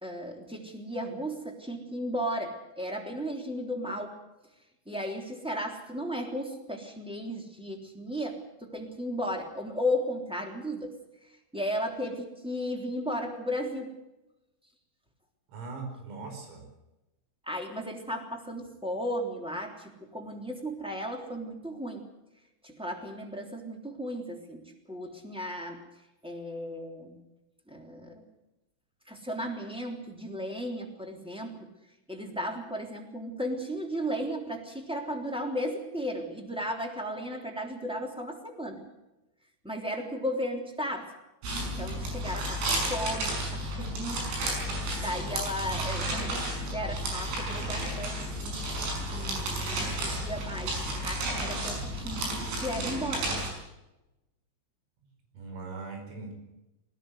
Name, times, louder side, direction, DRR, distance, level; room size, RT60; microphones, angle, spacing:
voice 1, 0.0-4.1 4.8-10.9 11.5-13.9 17.5-22.0 22.6-25.9 26.2-27.2 27.7-28.2 29.1-31.7 32.1-38.8 39.6-41.1 41.6-44.2 45.0-48.6 49.1-53.3, equal, ahead, 2 dB, 2.2 m, -35 dB
voice 2, 15.5-16.7 55.4-56.3, right 4 dB, 85° right, 4 dB, 7.6 m, -40 dB
sound 1, 41.4-53.5, right 1 dB, 70° right, 8.4 m, -32 dB
20.5 x 18.5 x 8.1 m, 0.96 s
omnidirectional pair, 5.9 m